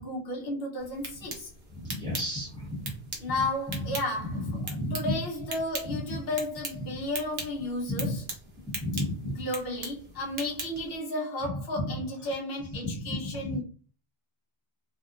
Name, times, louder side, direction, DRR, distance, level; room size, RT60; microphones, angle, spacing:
voice 1, 0.0-1.5 3.2-4.3 4.9-8.1 9.4-13.6, left 1 dB, 65° left, 1.0 m, -33 dB
sound 1, 0.8-11.0, right 3 dB, 55° right, 0.8 m, -41 dB
voice 2, 1.7-5.2 5.9-6.2 6.7-7.0 7.9-8.2 8.6-9.5 11.4-12.4 12.8-13.6, left 1 dB, 5° left, 1.1 m, -34 dB
2.8 x 2.1 x 2.4 m
omnidirectional pair, 1.1 m